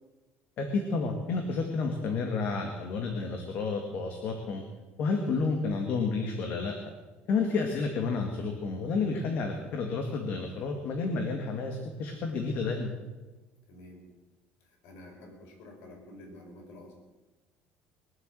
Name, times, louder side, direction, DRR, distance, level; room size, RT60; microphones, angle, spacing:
voice 1, 0.6-4.6 5.0-6.8 7.3-12.9, left 4 dB, 50° left, 4 dB, 1.9 m, -30 dB
voice 2, 13.7-14.1 14.6-16.9, left 1 dB, 75° left, 1 dB, 5.5 m, -49 dB
22.0 x 8.0 x 7.7 m, 1.2 s
cardioid pair, 155°, 4 cm